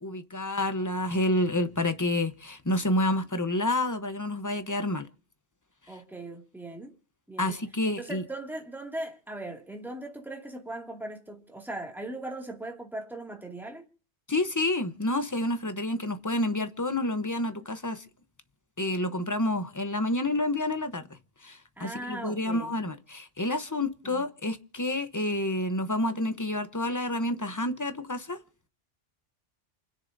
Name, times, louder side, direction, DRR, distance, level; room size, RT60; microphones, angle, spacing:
voice 1, 0.0-5.1 7.4-8.2 14.3-18.0 18.8-21.0 21.4-28.4, left 1 dB, 15° left, 0.8 m, -29 dB
voice 2, 5.9-6.9 7.3-7.5 8.0-13.8 21.8-22.7 24.0-24.2, right 1 dB, ahead, 2.2 m, -39 dB
28.5 x 10.0 x 2.7 m
omnidirectional pair, 1.3 m